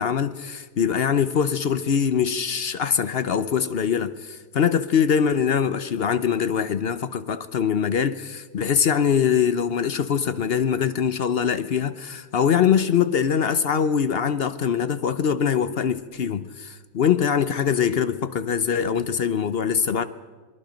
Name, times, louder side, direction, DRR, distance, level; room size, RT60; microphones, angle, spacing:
voice 1, 0.0-20.0, left 7 dB, 60° left, 0.6 m, -23 dB
27.0 x 22.0 x 5.1 m
omnidirectional pair, 1.9 m